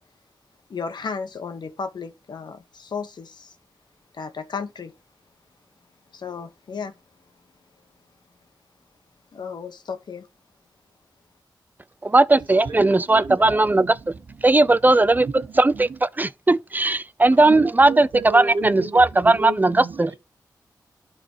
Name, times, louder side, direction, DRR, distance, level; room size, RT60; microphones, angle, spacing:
voice 1, 0.7-3.5 4.1-4.9 6.1-6.9 9.3-10.3, left 5 dB, 75° left, 1.3 m, -34 dB
voice 2, 12.0-14.0 14.4-18.1 18.3-20.1, right 2 dB, 25° right, 0.5 m, -18 dB
voice 3, 12.6-14.5 15.2-16.0 17.4-20.2, right 4 dB, 75° right, 1.4 m, -33 dB
11.5 x 4.0 x 5.6 m
cardioid pair, 65°, 7 cm